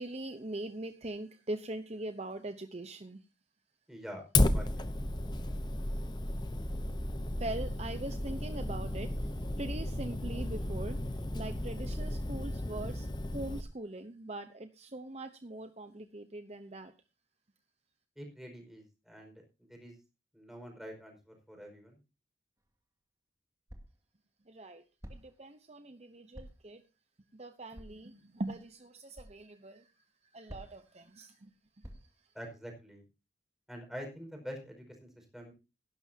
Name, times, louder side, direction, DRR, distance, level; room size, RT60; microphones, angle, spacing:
voice 1, 0.0-3.2 7.4-16.9 24.5-24.8 25.1-26.8 27.3-29.9 30.3-31.5 31.8-32.1, right 2 dB, 35° right, 8 dB, 0.9 m, -42 dB
voice 2, 3.9-4.9 18.2-19.3 19.7-19.9 20.3-21.9 32.3-33.0 33.7-34.8 35.1-35.5, equal, ahead, 2 dB, 5.1 m, -46 dB
Fire, 4.3-13.6, left 1 dB, 25° left, 0.8 m, -33 dB
sound 1, 22.6-22.7 23.7-24.1 25.0-25.4 26.3-26.7 27.7-28.1 29.1-29.4 30.5-30.9 31.8-32.3, equal, 20° right, 2.2 m, -49 dB
17.0 x 12.0 x 2.8 m, 0.29 s
head